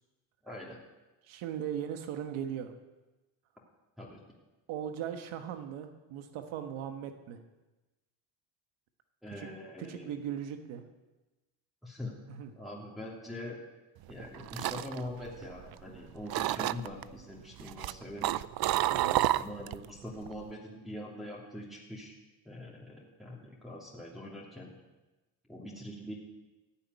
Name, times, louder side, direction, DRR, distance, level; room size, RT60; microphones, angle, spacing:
voice 1, 0.4-0.8 4.0-4.2 9.2-10.1 11.8-12.1 12.6-13.6 14.1-18.4 19.3-22.1 22.4-24.7 25.5-26.1, left 1 dB, ahead, -5 dB, 2.8 m, -43 dB
voice 2, 1.2-2.7 4.7-7.4 9.4-9.5 9.8-10.8 12.3-12.5 18.9-19.2, right 9 dB, 80° right, 7 dB, 1.4 m, -38 dB
sound 1, 14.1-16.0 16.3-17.0 17.6-19.9 20.2-20.5, right 15 dB, 50° right, 0.5 m, -30 dB
15.0 x 7.3 x 9.5 m, 1.1 s
cardioid pair, 105°, 48 cm